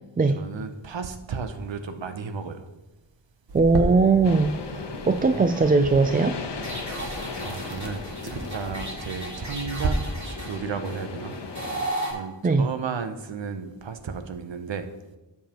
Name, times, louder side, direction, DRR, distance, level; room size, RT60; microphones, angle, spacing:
voice 1, 0.4-2.7 6.9-10.0 10.2-11.4 12.0-14.9, right 5 dB, 75° right, 8 dB, 0.8 m, -34 dB
voice 2, 3.5-4.5 5.1-6.4 12.4-12.7, right 4 dB, 20° right, 8 dB, 0.3 m, -19 dB
sound 1, 3.5-9.9, right 3 dB, 60° right, 1.1 m, -35 dB
sound 2, 4.2-11.9, left 4 dB, 65° left, 0.9 m, -37 dB
sound 3, 6.6-12.1, right 1 dB, 40° right, 2.9 m, -35 dB
12.5 x 7.2 x 2.9 m, 1.1 s
wide cardioid pair, 65°, 44 cm